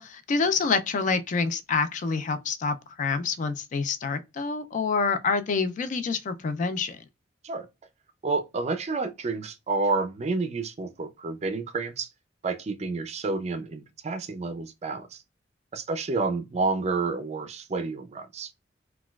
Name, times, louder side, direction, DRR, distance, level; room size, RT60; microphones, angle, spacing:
voice 1, 0.0-7.0, left 4 dB, 45° left, 0.3 m, -27 dB
voice 2, 8.2-12.1 12.4-15.2 15.7-18.5, right 3 dB, 35° right, 0.4 m, -29 dB
4.0 x 2.3 x 2.2 m
head